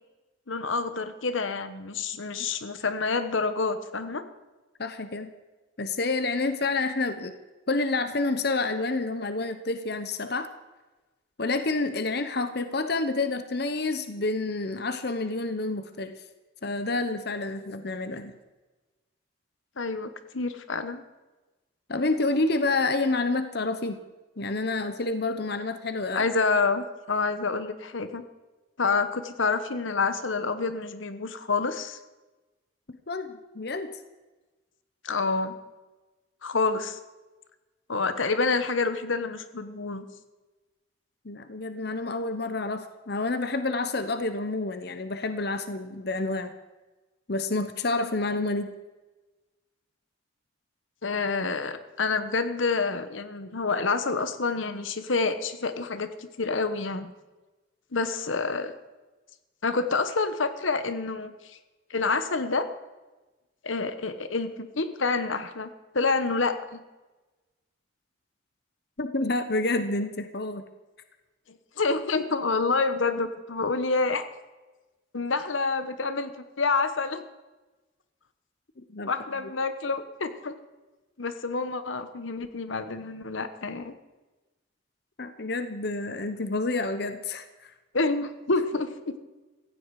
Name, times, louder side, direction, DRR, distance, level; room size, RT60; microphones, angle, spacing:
voice 1, 0.5-4.2 19.8-21.0 26.1-28.2 28.8-32.0 35.0-35.6 36.4-37.0 37.9-40.1 51.0-57.1 57.9-58.7 59.6-61.3 61.9-62.7 63.6-66.8 71.8-74.2 75.1-77.2 79.1-80.5 81.2-83.9 87.9-88.9, left 4 dB, 85° left, 10 dB, 1.2 m, -28 dB
voice 2, 4.8-5.3 5.8-7.3 7.7-10.5 11.4-16.1 16.6-18.3 21.9-24.0 24.4-26.3 33.1-33.9 41.2-46.5 47.3-48.7 69.0-70.7 78.9-79.1 85.2-87.7, left 3 dB, 55° left, 9 dB, 1.0 m, -28 dB
17.0 x 15.5 x 4.8 m, 1.2 s
head